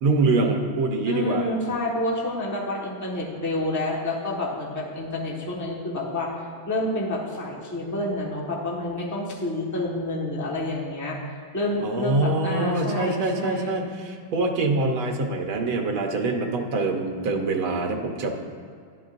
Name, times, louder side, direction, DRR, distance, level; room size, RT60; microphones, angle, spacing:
voice 1, 0.0-1.5 11.8-18.3, right 3 dB, 90° right, 2 dB, 1.9 m, -24 dB
voice 2, 1.1-11.2 11.5-13.9, left 1 dB, 10° left, -4 dB, 1.2 m, -29 dB
12.0 x 11.0 x 2.6 m, 2.3 s
omnidirectional pair, 2.2 m